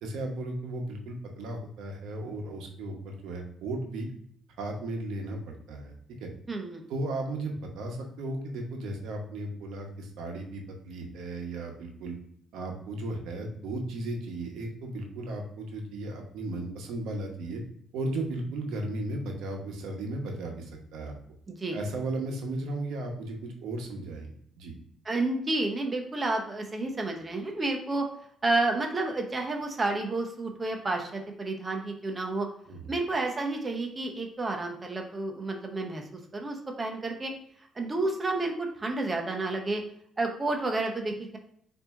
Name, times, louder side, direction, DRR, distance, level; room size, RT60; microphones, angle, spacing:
voice 1, 0.0-4.1 4.6-6.3 6.9-12.1 12.5-17.6 17.9-21.1 21.7-24.7 32.7-32.9, right 2 dB, 80° right, 2 dB, 0.8 m, -35 dB
voice 2, 6.5-6.8 21.5-21.8 25.1-28.1 28.4-32.5 32.9-36.0 36.3-37.3 37.8-39.8 40.2-41.4, right 2 dB, 20° right, 2 dB, 0.6 m, -30 dB
4.2 x 2.6 x 3.5 m, 0.67 s
cardioid pair, 130°, 0 cm